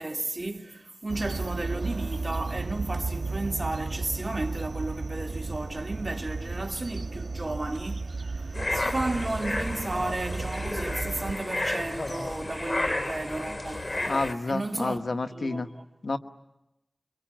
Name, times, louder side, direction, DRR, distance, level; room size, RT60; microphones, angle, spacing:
voice 1, 0.0-14.1 14.5-15.0 15.3-15.9, right 2 dB, 45° right, 2.2 m, -33 dB
sound 1, 1.1-11.3, right 3 dB, 80° right, 1.9 m, -34 dB
sound 2, 8.5-14.3, left 1 dB, 50° left, 2.8 m, -32 dB
voice 2, 14.1-15.7 16.0-16.2, left 3 dB, 80° left, 1.2 m, -29 dB
27.0 x 24.0 x 8.8 m
wide cardioid pair, 45°, 0 cm